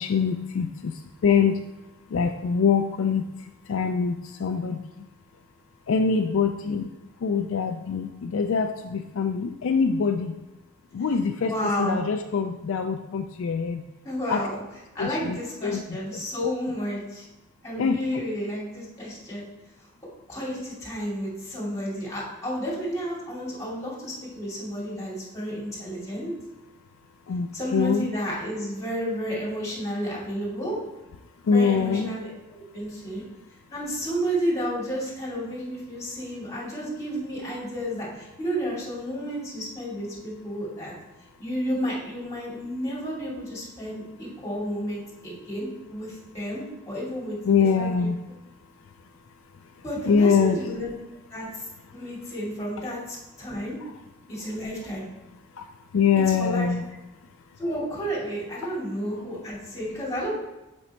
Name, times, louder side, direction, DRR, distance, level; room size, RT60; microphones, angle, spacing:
voice 1, 0.0-1.7 2.1-5.0 5.9-6.9 7.2-10.4 10.9-13.8 14.3-14.5 15.0-16.2 17.8-18.2 27.3-28.1 31.4-32.1 47.5-48.2 48.6-50.6 55.5-56.8 57.2-57.6 58.6-58.7, left 6 dB, 65° left, 7 dB, 0.3 m, -25 dB
voice 2, 11.4-12.0 14.0-14.6 14.9-17.3 17.6-19.4 19.8-19.9 20.3-26.3 27.5-30.8 31.5-33.2 33.7-40.9 41.4-47.4 47.8-48.1 49.8-50.9 51.3-51.7 51.9-53.8 54.3-55.1 56.4-56.7 57.6-60.3, equal, 15° left, -6 dB, 2.5 m, -31 dB
6.0 x 5.3 x 4.3 m, 1.0 s
head